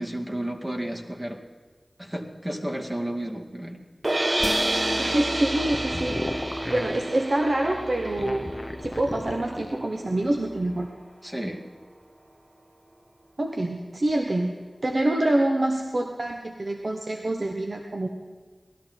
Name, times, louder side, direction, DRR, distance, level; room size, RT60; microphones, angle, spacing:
voice 1, 0.0-1.4 2.0-3.8 11.2-11.6, right 1 dB, 20° right, 0 dB, 2.2 m, -32 dB
sound 1, 4.0-10.2, right 1 dB, 35° right, 0.5 m, -30 dB
sound 2, 4.4-10.9, left 1 dB, 5° left, 0.7 m, -37 dB
voice 2, 5.0-6.2 6.7-8.4 8.8-10.9 13.4-18.1, right 1 dB, 60° right, 2 dB, 1.2 m, -26 dB
sound 3, 5.4-7.0 8.0-9.8, left 1 dB, 30° left, 0.9 m, -35 dB
19.0 x 13.0 x 4.5 m, 1.5 s
wide cardioid pair, 60°, 0 cm